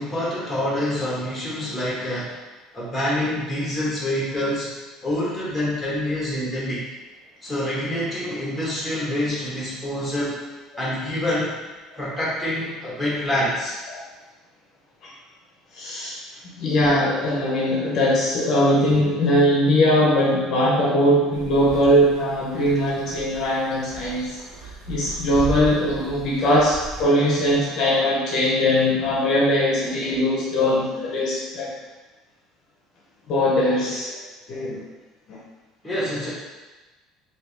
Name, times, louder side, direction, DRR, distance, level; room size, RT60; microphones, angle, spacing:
voice 1, 0.0-2.3 2.7-4.7 5.0-6.8 7.4-10.4 10.8-11.5 12.0-13.8 35.8-36.3, left 1 dB, ahead, -7 dB, 1.0 m, -26 dB
voice 2, 15.7-16.2 16.6-24.4 24.9-31.7 33.3-34.2 34.5-34.8 35.3-35.4, equal, 45° left, -4 dB, 0.6 m, -20 dB
sound 1, 21.3-27.0, right 3 dB, 55° right, 0.9 m, -36 dB
3.4 x 2.7 x 3.3 m, 1.2 s
cardioid pair, 165°, 0 cm